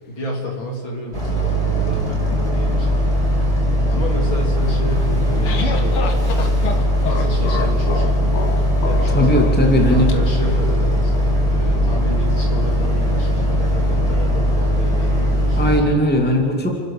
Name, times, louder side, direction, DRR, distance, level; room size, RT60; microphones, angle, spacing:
voice 1, 0.1-3.1 3.9-6.6 7.1-8.5 8.8-9.4 9.9-15.7, equal, 65° left, 0 dB, 4.4 m, -30 dB
Boat Water vehicle, 1.1-15.8, equal, 25° right, 7.2 m, -19 dB
sound 1, 5.0-10.1, left 4 dB, 90° left, 2.5 m, -28 dB
voice 2, 9.1-10.1 15.6-16.7, left 1 dB, 5° left, 1 dB, 2.2 m, -17 dB
29.0 x 12.0 x 7.4 m, 2.3 s
omnidirectional pair, 2.3 m